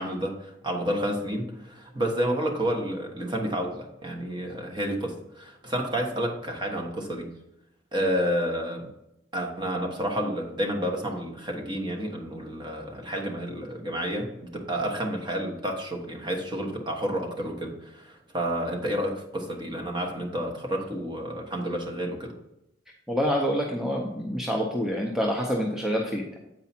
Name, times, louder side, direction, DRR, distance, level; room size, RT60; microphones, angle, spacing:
voice 1, 0.0-7.3 7.9-8.9 9.3-22.3, equal, 25° right, 2 dB, 1.3 m, -30 dB
voice 2, 23.1-26.4, equal, ahead, -1 dB, 0.7 m, -27 dB
8.3 x 4.8 x 4.3 m, 0.83 s
head